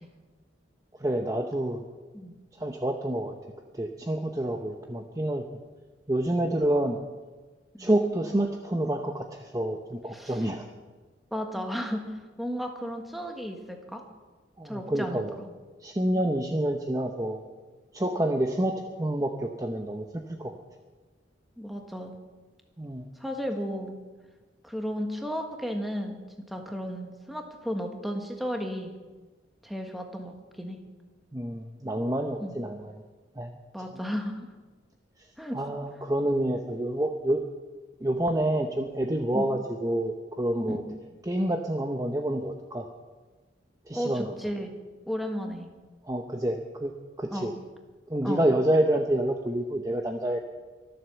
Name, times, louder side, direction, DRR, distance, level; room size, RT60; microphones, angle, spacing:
voice 1, 1.0-1.8 2.6-3.3 3.7-5.4 6.1-7.0 7.8-10.6 14.6-15.4 15.8-17.4 17.9-18.7 19.0-20.1 20.4-20.5 22.8-23.1 31.3-32.9 33.4-33.5 35.5-37.4 38.0-40.8 41.3-42.9 43.9-44.3 46.1-46.9 47.2-47.5 48.1-50.4, right 1 dB, 20° right, 4 dB, 0.8 m, -28 dB
voice 2, 10.1-10.5 11.3-14.0 14.6-15.5 16.2-16.3 21.6-22.2 23.2-24.0 24.6-28.9 29.6-30.8 32.4-32.6 33.7-34.5 35.4-35.6 39.3-39.5 40.7-40.8 44.0-44.8 45.1-45.7 47.3-47.5 48.2-48.5, equal, ahead, 3 dB, 1.5 m, -34 dB
23.5 x 7.9 x 7.1 m, 1.3 s
head